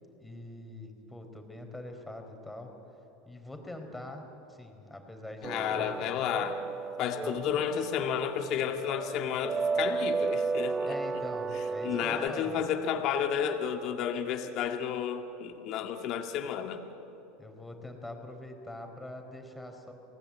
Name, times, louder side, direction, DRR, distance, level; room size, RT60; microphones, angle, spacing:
voice 1, 0.2-2.7 3.3-4.2 4.5-5.5 5.7-6.0 7.2-7.3 10.8-12.7 17.4-19.9, left 1 dB, 5° left, 4 dB, 4.4 m, -43 dB
voice 2, 5.4-6.6 7.0-11.0 11.8-16.8, left 8 dB, 55° left, 5 dB, 2.1 m, -31 dB
sound 1, 5.4-12.3, right 4 dB, 25° right, 0.5 m, -33 dB
29.5 x 19.0 x 8.7 m, 2.9 s
supercardioid pair, 105°, 0 cm